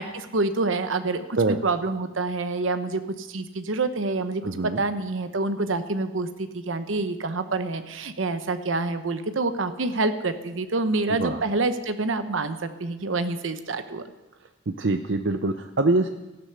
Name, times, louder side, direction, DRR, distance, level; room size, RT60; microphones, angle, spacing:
voice 1, 0.0-14.0, right 3 dB, 85° right, 9 dB, 0.9 m, -27 dB
voice 2, 4.4-4.8 11.2-11.4 14.7-16.1, right 2 dB, 65° right, 7 dB, 0.7 m, -24 dB
15.0 x 11.5 x 6.7 m, 1.0 s
head